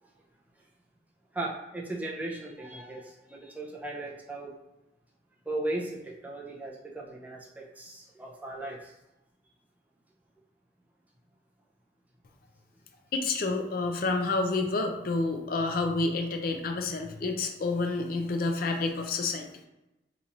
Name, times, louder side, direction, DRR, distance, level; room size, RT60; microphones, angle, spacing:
voice 1, 1.3-4.5 5.5-8.9, right 2 dB, 10° right, -3 dB, 0.5 m, -37 dB
voice 2, 13.1-19.5, left 3 dB, 55° left, 4 dB, 0.4 m, -29 dB
2.9 x 2.5 x 4.1 m, 0.96 s
head